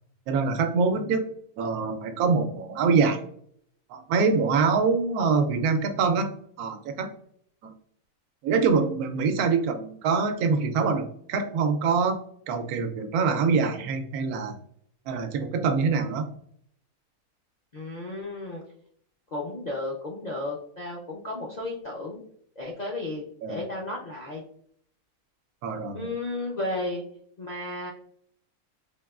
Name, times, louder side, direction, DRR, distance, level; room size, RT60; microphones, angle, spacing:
voice 1, 0.3-1.3 1.6-3.2 3.9-7.1 7.6-7.7 8.4-12.2 12.5-14.6 15.1-16.3 23.4-23.6 25.6-26.1, right 5 dB, 80° right, 7 dB, 1.1 m, -25 dB
voice 2, 5.2-5.5 17.7-18.6 19.3-22.2 22.6-24.4 25.9-27.0 27.4-27.9, left 2 dB, 55° left, -3 dB, 0.4 m, -33 dB
4.6 x 2.9 x 2.3 m, 0.63 s
omnidirectional pair, 1.6 m